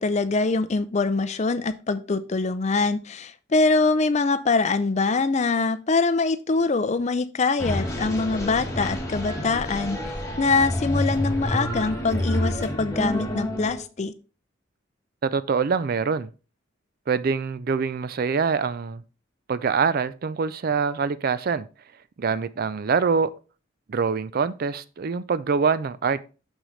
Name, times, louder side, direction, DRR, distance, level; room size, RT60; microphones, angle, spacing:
voice 1, 0.0-10.0 10.4-14.1, left 3 dB, 35° left, 0.4 m, -23 dB
sound 1, 7.6-13.8, left 1 dB, 15° left, 1.5 m, -28 dB
voice 2, 15.2-16.3 17.1-19.0 19.5-21.7 22.2-23.3 23.9-26.2, right 5 dB, 45° right, 0.4 m, -24 dB
6.4 x 6.3 x 3.2 m
head